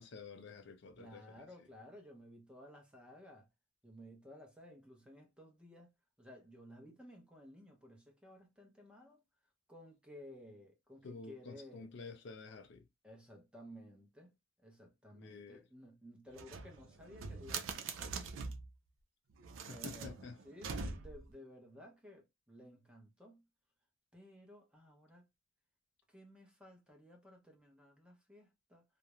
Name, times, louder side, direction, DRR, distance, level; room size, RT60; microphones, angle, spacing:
voice 1, 0.0-1.4 11.0-12.8 15.1-15.6 19.7-20.4, left 4 dB, 60° left, 0.4 m, -50 dB
voice 2, 0.9-3.5 3.8-5.9 6.2-9.2 9.7-11.9 13.0-14.3 14.6-18.2 19.7-20.2 20.4-23.4 24.1-25.2 26.1-28.8, equal, 5° right, 0.6 m, -56 dB
sound 1, 16.3-18.7 19.4-21.3, right 4 dB, 80° right, 0.4 m, -43 dB
2.4 x 2.1 x 2.9 m
head